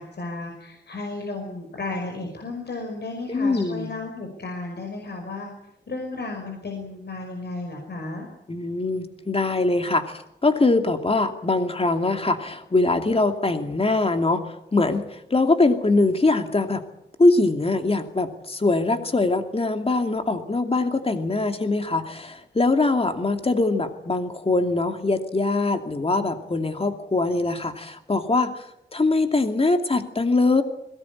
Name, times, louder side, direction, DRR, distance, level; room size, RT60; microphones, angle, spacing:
voice 1, 0.0-5.5 5.9-8.3, left 3 dB, 65° left, 2 dB, 5.6 m, -33 dB
voice 2, 3.3-3.9 8.5-10.0 10.4-14.4 14.7-15.0 15.3-16.8 17.2-28.5 28.9-30.6, left 3 dB, 30° left, 6 dB, 2.6 m, -22 dB
22.0 x 18.5 x 9.8 m, 0.81 s
wide cardioid pair, 95°, 19 cm